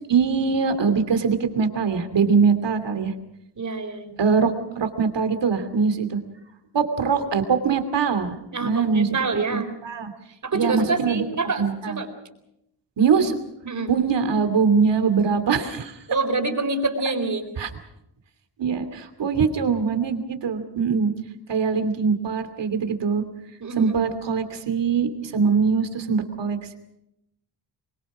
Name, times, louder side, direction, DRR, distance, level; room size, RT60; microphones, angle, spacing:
voice 1, 0.1-3.1 4.2-6.2 6.7-9.1 9.5-10.1 10.5-11.2 11.6-12.0 13.0-13.4 13.9-16.0 17.6-17.7 18.6-21.1 21.5-23.2 23.8-26.8, right 5 dB, 90° right, 9 dB, 2.8 m, -22 dB
voice 2, 3.6-4.1 8.5-9.7 10.4-12.1 13.6-13.9 16.1-17.4 23.6-23.9, right 3 dB, 45° right, 6 dB, 4.2 m, -26 dB
25.0 x 23.5 x 6.1 m, 0.82 s
wide cardioid pair, 130°, 42 cm